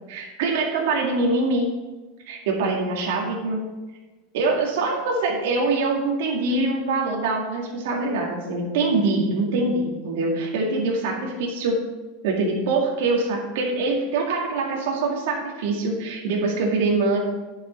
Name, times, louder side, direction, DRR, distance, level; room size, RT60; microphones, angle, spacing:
voice 1, 0.1-1.7 2.3-3.6 4.3-11.8 12.2-17.2, right 3 dB, 75° right, -1 dB, 2.1 m, -24 dB
10.5 x 6.7 x 4.4 m, 1.2 s
supercardioid pair, 145°, 0 cm